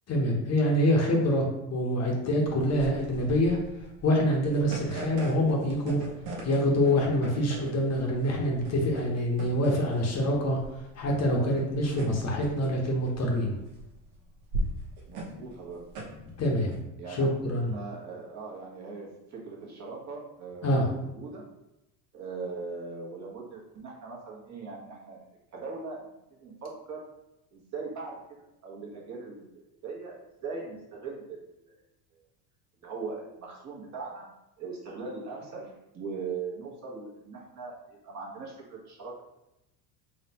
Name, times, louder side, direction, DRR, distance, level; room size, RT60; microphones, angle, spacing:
voice 1, 0.1-3.6 4.0-6.0 6.4-10.6 11.0-13.5 16.4-16.8 17.1-17.7 20.6-20.9, equal, 35° left, 0 dB, 0.8 m, -26 dB
sound 1, 2.0-16.8, right 2 dB, 85° right, 1.2 m, -39 dB
voice 2, 15.0-15.8 17.0-17.3 17.6-21.4 22.1-25.2 25.5-26.1 26.4-27.0 27.5-28.2 28.6-31.8 32.8-34.2 34.6-39.1, right 4 dB, 35° right, -3 dB, 1.2 m, -40 dB
3.9 x 3.2 x 2.8 m, 0.89 s
supercardioid pair, 110°, 46 cm